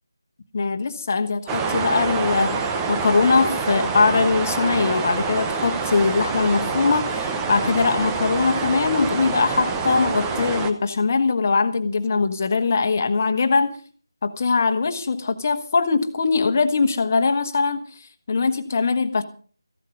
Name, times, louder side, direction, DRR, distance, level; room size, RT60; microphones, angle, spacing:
voice 1, 0.5-2.6 2.9-13.7 14.2-17.9 18.3-19.2, left 4 dB, 35° left, 7 dB, 1.4 m, -21 dB
sound 1, 1.5-10.7, right 4 dB, 10° right, 0.8 m, -26 dB
15.0 x 11.5 x 5.4 m, 0.42 s
figure-of-eight pair, 165°, 2 cm